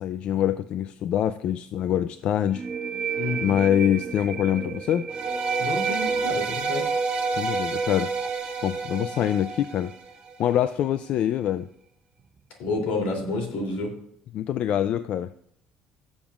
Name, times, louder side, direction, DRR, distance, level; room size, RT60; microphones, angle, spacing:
voice 1, 0.0-2.6 3.4-5.1 7.4-8.1 8.6-9.9 10.4-11.7 14.3-15.3, left 10 dB, 50° left, 12 dB, 0.3 m, -25 dB
sound 1, 2.5-10.0, right 6 dB, 20° right, 0.5 m, -34 dB
voice 2, 3.2-3.6 5.6-6.9 12.6-13.9, left 2 dB, 75° left, 1 dB, 3.0 m, -29 dB
sound 2, 5.1-10.3, right 4 dB, 45° right, 1.4 m, -29 dB
16.5 x 7.2 x 2.4 m, 0.69 s
cardioid pair, 155°, 3 cm